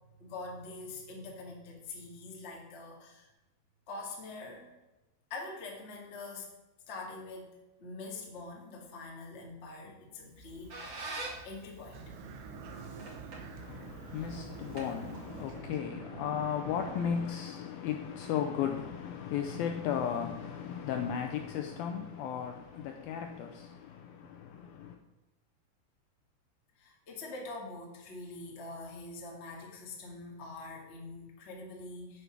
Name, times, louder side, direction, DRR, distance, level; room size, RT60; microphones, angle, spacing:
voice 1, 0.2-3.3 3.9-4.7 5.3-6.5 6.9-7.5 7.8-10.7 11.1-12.2 26.8-32.2, left 3 dB, 35° left, 1.0 m, -44 dB
Squeak, 10.2-15.7, right 2 dB, 40° right, 3.0 m, -46 dB
sound 1, 11.9-17.3, right 5 dB, 90° right, 3.5 m, -46 dB
voice 2, 13.6-25.0, left 8 dB, 90° left, 2.1 m, -35 dB
9.2 x 8.3 x 6.2 m
omnidirectional pair, 5.0 m